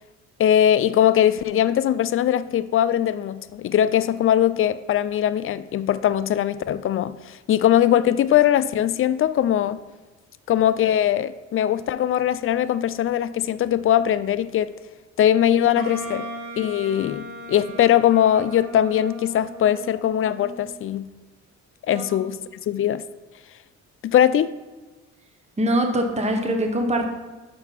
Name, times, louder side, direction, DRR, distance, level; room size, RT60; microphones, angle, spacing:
voice 1, 0.4-9.8 10.5-14.7 15.2-16.3 16.6-21.1 21.9-22.4 22.7-23.0 24.0-24.6, left 10 dB, 45° left, 0.4 m, -21 dB
Wind instrument woodwind instrument, 15.8-20.8, right 1 dB, 75° right, 2.1 m, -37 dB
voice 2, 25.6-27.1, right 1 dB, 20° right, 1.2 m, -23 dB
5.7 x 5.4 x 5.8 m
cardioid pair, 90°, 30 cm